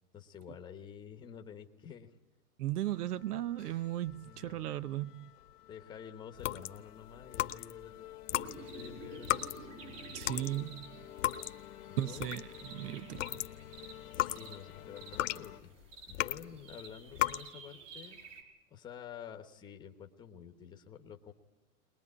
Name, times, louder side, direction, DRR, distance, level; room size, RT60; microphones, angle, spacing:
voice 1, 0.1-2.1 4.2-4.6 5.7-7.9 8.3-9.7 11.9-12.3 14.1-15.8 16.1-18.2 18.7-21.3, left 8 dB, 10° left, 1.1 m, -49 dB
voice 2, 2.6-5.3 10.1-11.1 12.0-13.4, right 14 dB, 90° right, 0.9 m, -36 dB
sound 1, 2.8-15.6, left 13 dB, 80° left, 1.2 m, -52 dB
sound 2, 6.4-7.9 8.2-12.7 13.0-16.6 17.1-17.5, left 15 dB, 55° left, 1.0 m, -36 dB
sound 3, 8.3-18.4, right 5 dB, 55° right, 4.4 m, -52 dB
21.5 x 21.5 x 9.7 m
supercardioid pair, 170°, 45 cm